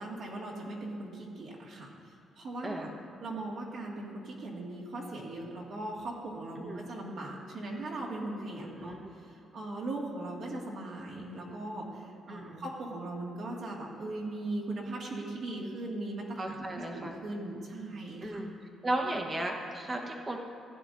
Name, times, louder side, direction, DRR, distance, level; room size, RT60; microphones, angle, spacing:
voice 1, 0.0-2.9 3.2-16.7 16.9-18.4, right 2 dB, 55° right, -2 dB, 1.9 m, -39 dB
voice 2, 2.6-3.0 6.6-6.8 8.6-9.1 12.3-12.7 16.4-17.1 18.2-18.5 18.8-20.4, right 1 dB, 20° right, 2 dB, 1.0 m, -35 dB
15.5 x 10.0 x 2.6 m, 2.7 s
cardioid pair, 155°, 0 cm